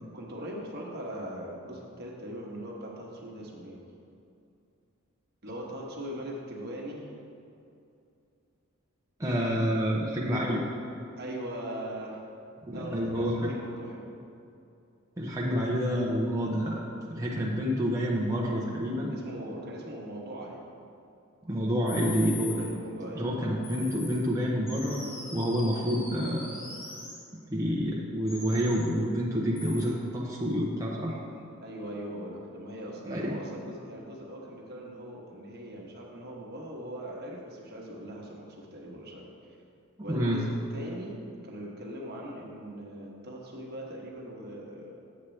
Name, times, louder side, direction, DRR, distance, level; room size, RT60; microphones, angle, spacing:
voice 1, 0.0-3.8 5.4-7.1 9.5-9.6 11.2-12.2 12.7-14.1 19.1-20.7 22.5-23.3 31.6-39.3 40.0-45.0, equal, 50° right, -2 dB, 1.2 m, -40 dB
voice 2, 9.2-10.6 12.6-13.5 15.2-16.8 17.1-19.1 21.4-22.6 23.1-25.0 25.3-26.6 27.5-31.1 33.1-33.4 40.1-40.4, equal, 15° right, -4 dB, 0.6 m, -28 dB
sound 1, 21.9-22.7 23.6-24.2 24.7-27.2 28.3-28.8 29.6-29.9, left 4 dB, 45° left, 1.7 m, -42 dB
8.3 x 7.1 x 3.2 m, 2.6 s
head